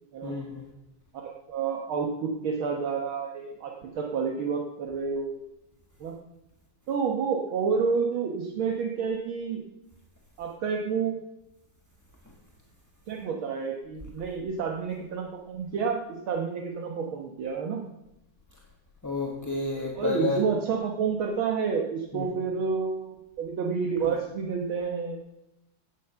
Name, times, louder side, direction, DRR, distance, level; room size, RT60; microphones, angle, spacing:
voice 1, 0.2-0.6 19.0-20.4 22.1-22.2 24.0-24.1, left 3 dB, 10° left, -1 dB, 1.2 m, -30 dB
voice 2, 1.1-5.4 6.0-6.2 6.9-9.6 10.4-11.2 13.1-17.8 20.0-25.2, right 5 dB, 70° right, 2 dB, 2.0 m, -29 dB
17.0 x 7.3 x 6.8 m, 0.93 s
omnidirectional pair, 2.4 m